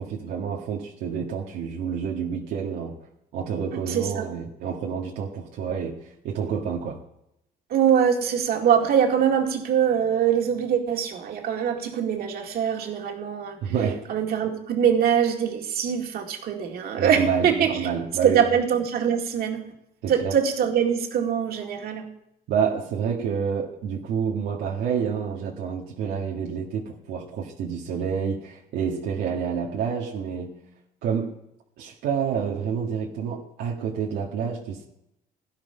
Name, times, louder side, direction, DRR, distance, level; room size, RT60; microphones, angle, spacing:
voice 1, 0.0-3.0 3.3-7.0 13.6-14.0 17.0-18.5 20.0-20.4 22.5-30.6 31.0-31.3 31.8-34.9, right 7 dB, 80° right, -2 dB, 1.8 m, -28 dB
voice 2, 3.9-4.3 7.7-13.7 14.1-17.8 18.2-19.6 20.1-22.1, right 8 dB, 65° right, 2 dB, 2.2 m, -23 dB
17.0 x 10.5 x 5.6 m, 0.84 s
cardioid pair, 110°, 17 cm